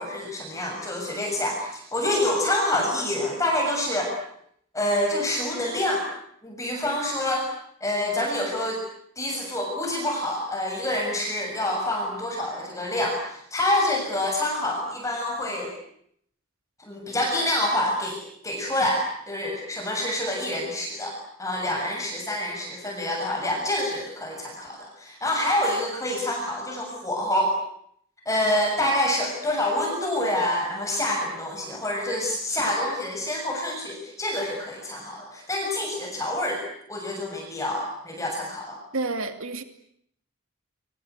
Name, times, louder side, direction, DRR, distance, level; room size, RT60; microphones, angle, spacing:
voice 1, 0.0-4.1 4.7-6.1 6.4-7.5 7.8-8.8 9.2-15.7 16.8-18.2 18.4-27.5 28.3-36.6 36.9-38.8, left 1 dB, 15° left, 0 dB, 6.9 m, -27 dB
voice 2, 38.9-39.6, right 3 dB, 75° right, 8 dB, 2.6 m, -29 dB
29.0 x 24.5 x 8.2 m, 0.71 s
head